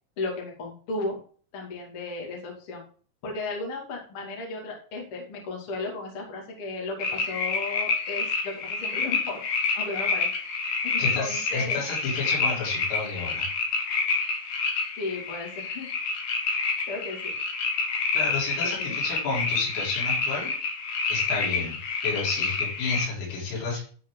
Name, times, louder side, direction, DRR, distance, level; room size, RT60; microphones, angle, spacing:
voice 1, 0.2-1.2 1.5-2.8 3.2-9.4 9.7-10.3 10.8-11.8 15.0-15.9 16.9-17.3 18.6-19.0, left 3 dB, 40° left, 0 dB, 2.2 m, -35 dB
sound 1, 7.0-23.1, left 4 dB, 90° left, 1.8 m, -28 dB
voice 2, 11.0-13.4 18.1-20.5 21.1-21.8 22.0-23.8, left 4 dB, 70° left, -7 dB, 6.8 m, -31 dB
12.5 x 4.9 x 3.9 m, 0.43 s
omnidirectional pair, 5.9 m